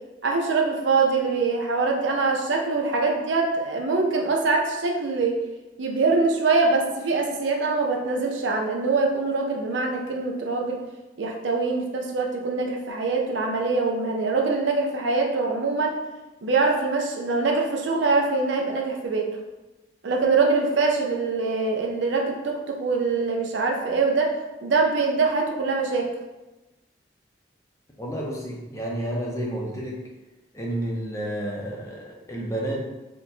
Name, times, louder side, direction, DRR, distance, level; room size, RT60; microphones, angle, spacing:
voice 1, 0.2-5.4 5.8-10.8 11.2-15.9 16.4-19.3 20.0-24.3 24.6-26.1, right 3 dB, 80° right, 1 dB, 0.5 m, -23 dB
voice 2, 28.0-30.0 30.5-32.8, right 1 dB, 15° left, -3 dB, 0.5 m, -30 dB
4.4 x 2.2 x 2.7 m, 1.1 s
head